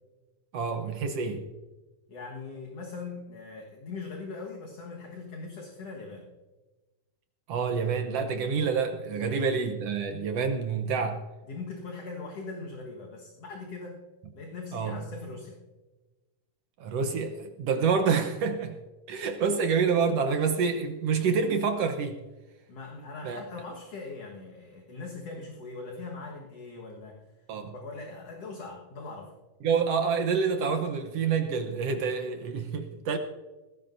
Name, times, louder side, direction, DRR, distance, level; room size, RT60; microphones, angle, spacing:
voice 1, 0.5-1.5 7.5-11.2 14.7-15.0 16.8-18.8 19.1-22.2 23.2-23.4 27.5-27.7 29.6-33.2, right 5 dB, 70° right, 1.5 m, -27 dB
voice 2, 2.1-6.3 9.1-9.6 11.5-14.0 14.3-15.6 22.7-27.2 27.7-29.3, left 3 dB, 55° left, 2.2 m, -41 dB
19.5 x 16.5 x 2.6 m
omnidirectional pair, 3.8 m